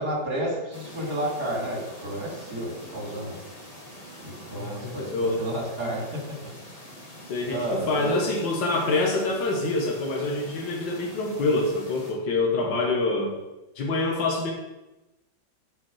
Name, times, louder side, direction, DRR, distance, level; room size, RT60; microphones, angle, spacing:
voice 1, 0.0-3.4 4.2-6.2 7.5-8.2, right 1 dB, 60° right, -3 dB, 3.3 m, -31 dB
sound 1, 0.7-12.1, left 1 dB, 20° left, 1.5 m, -44 dB
voice 2, 4.6-5.4 7.3-13.4 13.8-14.5, left 2 dB, 75° left, 0 dB, 2.1 m, -26 dB
7.5 x 6.1 x 6.3 m, 1.0 s
omnidirectional pair, 2.0 m